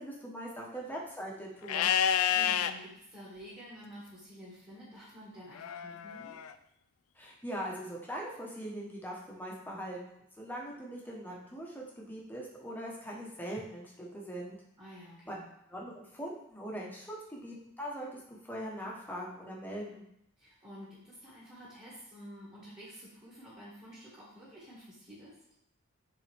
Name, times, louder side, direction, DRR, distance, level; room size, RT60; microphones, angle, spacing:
voice 1, 0.0-1.9 7.2-14.6 15.3-15.4 15.7-20.1, equal, 10° left, -3 dB, 1.2 m, -41 dB
Livestock farm animals working animals, 1.7-2.7 5.6-6.5, left 9 dB, 85° left, 0.4 m, -29 dB
voice 2, 2.3-6.4 14.8-15.5 20.4-25.4, equal, 25° right, -10 dB, 2.0 m, -50 dB
9.1 x 3.8 x 3.5 m, 0.76 s
head